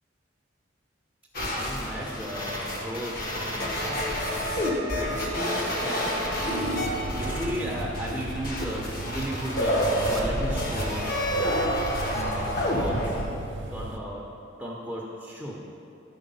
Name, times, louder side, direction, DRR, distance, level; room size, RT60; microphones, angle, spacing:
sound 1, 1.3-13.2, equal, 50° left, 1.3 m, -28 dB
voice 1, 1.5-4.3 5.0-6.2 7.1-11.5 12.1-13.2 13.7-14.3 14.6-15.7, equal, 5° right, -4 dB, 0.8 m, -35 dB
sound 2, 6.5-14.0, right 2 dB, 65° right, 0.7 m, -38 dB
11.5 x 4.6 x 5.5 m, 2.6 s
head